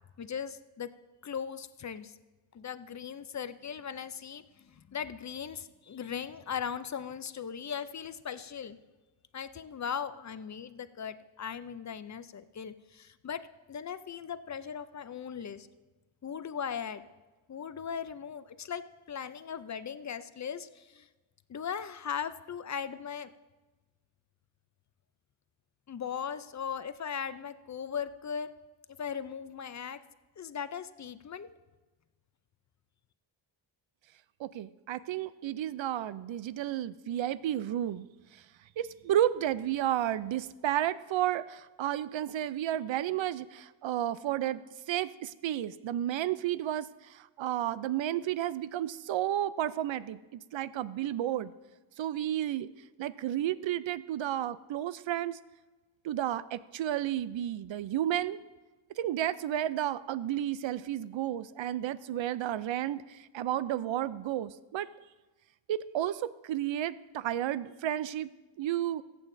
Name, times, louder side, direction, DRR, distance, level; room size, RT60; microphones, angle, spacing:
voice 1, 0.2-0.9 1.2-2.2 2.5-8.8 9.3-13.4 13.7-15.7 16.2-17.0 17.5-21.1 21.5-23.3 25.9-28.5 29.0-30.0 30.4-31.5, left 7 dB, 40° left, 13 dB, 0.4 m, -38 dB
voice 2, 34.4-38.1 38.3-38.4 38.8-44.6 44.9-51.5 52.0-52.7 53.0-55.4 56.0-58.4 59.0-64.9 65.7-68.3 68.6-69.0, right 12 dB, 70° right, 16 dB, 0.5 m, -32 dB
21.5 x 8.4 x 2.6 m, 1.2 s
wide cardioid pair, 155°, 49 cm